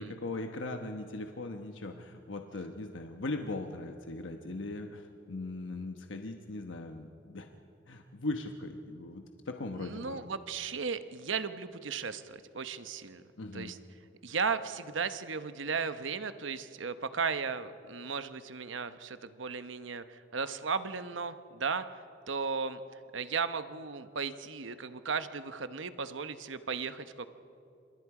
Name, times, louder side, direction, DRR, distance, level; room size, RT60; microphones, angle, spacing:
voice 1, 0.0-7.5 7.9-10.2 13.4-13.7, left 2 dB, 85° left, 5 dB, 1.1 m, -39 dB
voice 2, 9.7-13.2 13.5-13.8 14.2-21.8 22.3-22.8 23.1-27.3, right 5 dB, 80° right, 11 dB, 1.0 m, -35 dB
28.0 x 26.0 x 4.9 m, 2.8 s
head